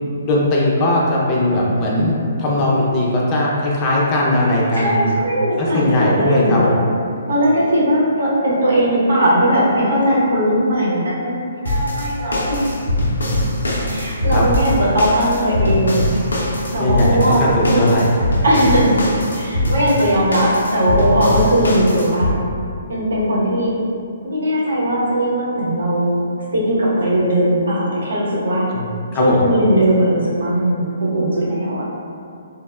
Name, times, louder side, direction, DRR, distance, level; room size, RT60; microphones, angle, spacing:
voice 1, 0.2-5.2 5.6-6.8 14.3-14.5 16.8-18.2 28.7-28.9 29.1-29.4, left 1 dB, 30° left, -4 dB, 0.5 m, -18 dB
voice 2, 4.7-6.8 7.3-12.8 13.9-17.9 18.4-19.1 19.3-22.3 22.9-23.7 24.2-28.7 29.2-31.8, equal, 75° right, -7 dB, 0.9 m, -18 dB
sound 1, 11.7-22.3, left 1 dB, 80° left, 0.5 m, -22 dB
sound 2, 12.1-17.8, left 1 dB, 30° right, 0.9 m, -30 dB
3.3 x 2.0 x 2.3 m, 2.4 s
figure-of-eight pair, 135°, 0 cm